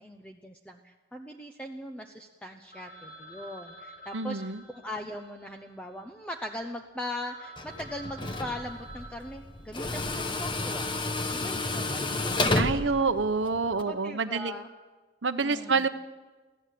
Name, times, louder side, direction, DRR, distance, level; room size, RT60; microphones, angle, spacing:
voice 1, 0.0-4.4 4.7-11.0 11.3-13.1 13.7-14.7 15.4-15.9, left 1 dB, 5° left, 3 dB, 0.9 m, -40 dB
Telephone, 2.7-6.5 7.0-7.1 7.3-10.2, right 1 dB, 55° left, 4.6 m, -49 dB
voice 2, 4.1-4.6 12.5-14.5 15.2-15.9, right 4 dB, 85° right, 11 dB, 1.0 m, -27 dB
Tools, 7.6-13.8, left 2 dB, 25° left, 1.1 m, -31 dB
24.0 x 16.0 x 7.7 m, 1.3 s
head